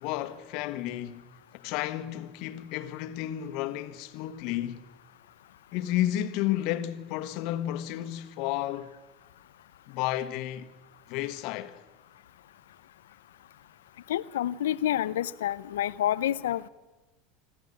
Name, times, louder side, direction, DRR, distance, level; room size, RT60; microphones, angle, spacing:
voice 1, 0.0-1.2 1.6-4.8 5.7-8.9 9.9-10.7 11.1-11.8, left 13 dB, 60° left, 1.5 m, -32 dB
voice 2, 14.1-16.7, left 12 dB, 80° left, 0.7 m, -28 dB
25.5 x 14.0 x 9.9 m
hypercardioid pair, 85°, 0 cm